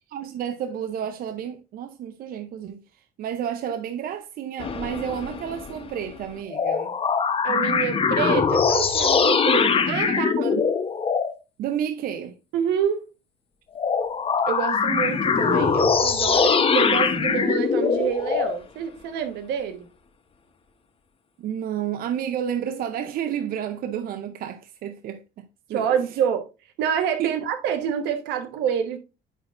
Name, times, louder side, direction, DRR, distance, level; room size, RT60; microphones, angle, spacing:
voice 1, 0.1-2.8 3.2-6.9 10.1-10.6 11.6-12.3 21.4-25.4 25.7-25.9 27.2-27.4, right 9 dB, 60° right, 0.6 m, -31 dB
sound 1, 4.6-6.2 6.5-11.3 13.8-18.6, left 5 dB, 35° left, 0.9 m, -22 dB
voice 2, 7.4-10.4 12.5-13.1 14.5-19.9 25.7-26.4 26.8-29.0, right 8 dB, 85° right, 1.2 m, -27 dB
10.0 x 4.3 x 2.5 m
cardioid pair, 110°, 17 cm